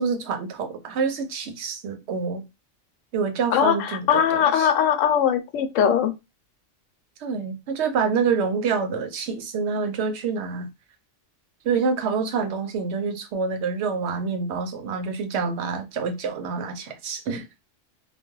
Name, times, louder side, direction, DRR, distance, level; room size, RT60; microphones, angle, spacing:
voice 1, 0.0-2.4 3.1-4.7 7.2-10.7 11.6-17.5, right 5 dB, 70° right, 0.8 m, -27 dB
voice 2, 3.5-6.1, left 9 dB, 85° left, 0.9 m, -20 dB
2.2 x 2.2 x 3.0 m
omnidirectional pair, 1.3 m